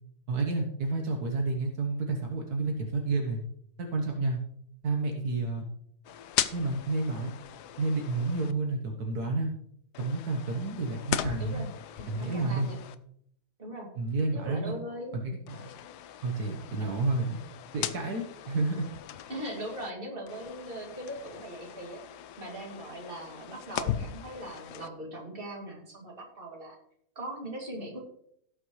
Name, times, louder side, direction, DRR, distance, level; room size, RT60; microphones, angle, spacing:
voice 1, 0.3-3.4 3.8-4.4 4.8-5.6 6.5-7.3 7.8-9.5 10.0-11.7 12.1-12.7 14.0-14.7 15.1-15.7 16.2-17.4 17.7-18.9, right 3 dB, 75° right, 2 dB, 1.7 m, -30 dB
sound 1, 6.0-8.5 9.9-12.9 15.5-19.9 20.3-24.9, left 11 dB, 85° left, 1.2 m, -38 dB
voice 2, 11.4-11.7 12.0-12.8 13.6-13.9 14.3-15.2 19.3-22.0 22.4-26.8 27.2-28.0, right 1 dB, 35° right, -1 dB, 2.7 m, -40 dB
17.5 x 6.1 x 3.2 m, 0.69 s
omnidirectional pair, 1.7 m